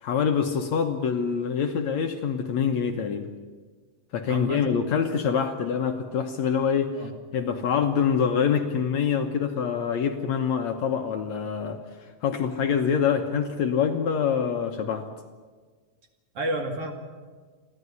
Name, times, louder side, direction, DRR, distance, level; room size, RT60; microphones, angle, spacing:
voice 1, 0.0-3.3 4.1-15.1, left 7 dB, 65° left, 5 dB, 2.1 m, -25 dB
voice 2, 4.3-4.9 6.9-7.1 16.3-16.9, right 1 dB, 45° right, 3 dB, 3.0 m, -31 dB
29.0 x 12.0 x 9.7 m, 1.5 s
omnidirectional pair, 4.0 m